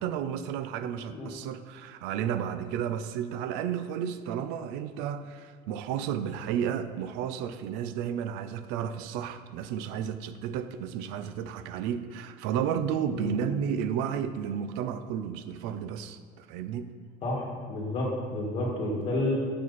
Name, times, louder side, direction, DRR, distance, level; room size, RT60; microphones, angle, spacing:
voice 1, 0.0-16.9, right 8 dB, 80° right, 11 dB, 0.5 m, -32 dB
voice 2, 17.7-19.4, left 1 dB, 30° left, -2 dB, 1.7 m, -30 dB
7.3 x 6.3 x 4.1 m, 2.1 s
cardioid pair, 175°, 17 cm